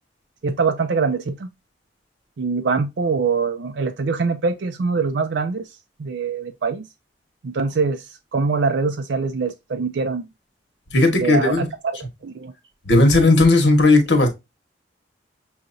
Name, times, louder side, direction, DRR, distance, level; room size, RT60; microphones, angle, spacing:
voice 1, 0.4-1.5 2.4-5.7 6.0-6.8 7.4-10.3 11.2-11.7 12.2-12.5, right 4 dB, 70° right, 0.5 m, -23 dB
voice 2, 10.9-11.7 12.8-14.3, left 2 dB, 70° left, 1.4 m, -15 dB
6.3 x 2.8 x 2.6 m
head